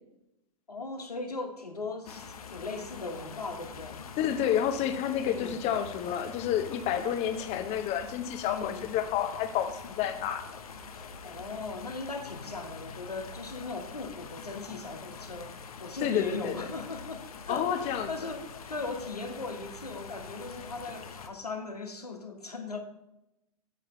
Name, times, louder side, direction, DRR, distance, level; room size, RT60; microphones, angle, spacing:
voice 1, 0.7-4.0 5.2-5.6 8.4-8.9 11.2-22.8, left 3 dB, 90° left, 1.4 m, -38 dB
sound 1, 2.1-21.3, left 5 dB, 70° left, 1.0 m, -45 dB
voice 2, 4.2-10.5 16.0-16.7 17.5-18.3, left 9 dB, 35° left, 1.1 m, -30 dB
9.4 x 8.5 x 3.2 m
figure-of-eight pair, 105°, 19 cm